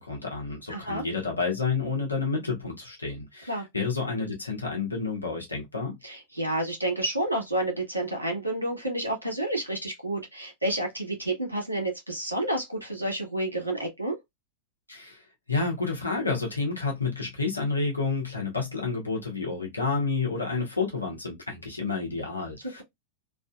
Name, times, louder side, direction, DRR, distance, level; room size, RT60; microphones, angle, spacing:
voice 1, 0.0-6.0 14.9-22.8, left 4 dB, 85° left, 1.0 m, -30 dB
voice 2, 0.7-1.0 3.5-3.6 6.0-14.2, right 1 dB, 85° right, 1.4 m, -30 dB
3.3 x 2.5 x 2.3 m
figure-of-eight pair, 90°, 0 cm